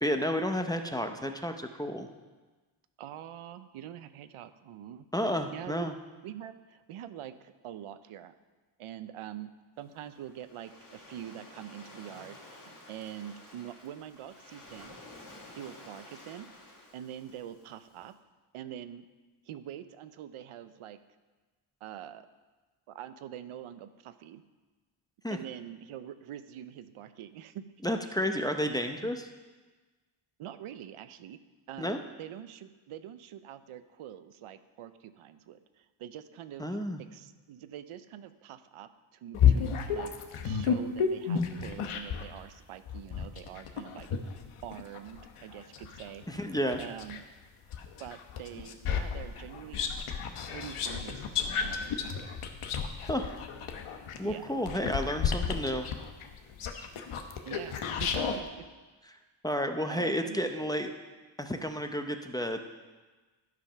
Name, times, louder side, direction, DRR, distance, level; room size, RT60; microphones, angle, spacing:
voice 1, 0.0-2.1 5.1-5.9 25.2-25.4 27.8-29.3 31.8-32.0 36.6-37.0 46.3-46.8 53.1-53.3 54.2-55.9 59.1-59.2 59.4-60.9 61.4-62.6, equal, 10° left, 5 dB, 0.6 m, -31 dB
voice 2, 3.0-5.1 5.5-5.9 6.2-8.3 8.8-9.5 9.8-15.0 15.5-16.5 16.9-18.1 18.5-19.0 19.5-21.0 21.8-22.2 22.9-24.4 25.3-28.1 29.0-29.1 30.4-31.4 31.7-36.8 37.1-40.1 40.4-44.3 44.6-47.2 48.0-49.9 50.4-52.0 54.2-54.4 54.7-54.9 57.5-58.6 59.9-60.9, right 10 dB, 85° right, 11 dB, 0.7 m, -45 dB
Waves surf, 9.8-18.0, left 2 dB, 40° left, 2.6 m, -52 dB
sound 1, 39.3-42.3 42.9-47.2 47.7-58.4, left 7 dB, 85° left, 1.0 m, -31 dB
12.0 x 5.2 x 5.7 m, 1.3 s
cardioid pair, 95°, 49 cm